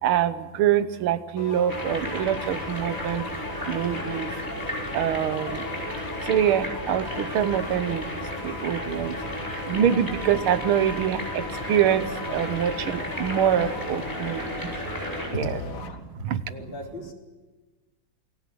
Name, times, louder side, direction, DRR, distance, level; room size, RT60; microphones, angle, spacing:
voice 1, 0.0-3.3 3.7-4.3 4.9-5.7 6.2-8.1 8.4-9.2 9.7-14.8 15.3-15.5 16.2-16.4, right 9 dB, 85° right, 13 dB, 1.9 m, -25 dB
sound 1, 1.4-16.0, left 5 dB, 45° left, 1.8 m, -39 dB
sound 2, 1.7-15.3, equal, 10° left, 5.3 m, -33 dB
voice 2, 15.3-15.8 16.1-17.1, left 2 dB, 65° left, 0 dB, 4.6 m, -37 dB
28.0 x 20.0 x 7.8 m, 1.2 s
omnidirectional pair, 2.3 m